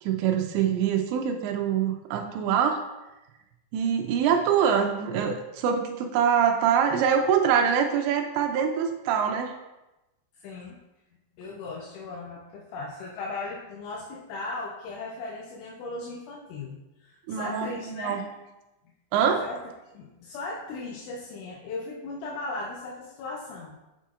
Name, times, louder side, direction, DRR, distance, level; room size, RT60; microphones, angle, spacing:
voice 1, 0.0-2.8 3.7-9.5 17.3-18.2 19.1-19.5, right 7 dB, 85° right, 4 dB, 2.6 m, -24 dB
voice 2, 10.4-10.8 11.4-16.8 17.0-18.2 19.4-19.6 19.9-23.8, left 3 dB, 80° left, -2 dB, 3.0 m, -37 dB
7.7 x 5.6 x 2.4 m, 0.99 s
omnidirectional pair, 5.6 m